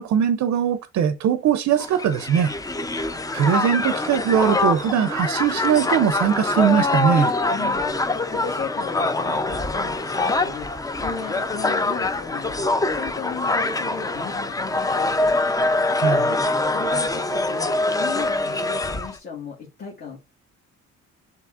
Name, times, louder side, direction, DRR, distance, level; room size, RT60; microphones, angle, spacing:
voice 1, 0.0-2.5 3.3-7.3 16.0-16.5, right 9 dB, 65° right, 0.5 m, -21 dB
Crowd, 1.8-19.2, left 2 dB, 10° left, 0.4 m, -24 dB
voice 2, 7.5-10.7 11.0-12.7 12.9-15.3 16.7-20.2, left 5 dB, 35° left, 1.3 m, -36 dB
6.8 x 2.9 x 2.4 m
cardioid pair, 90°, 30 cm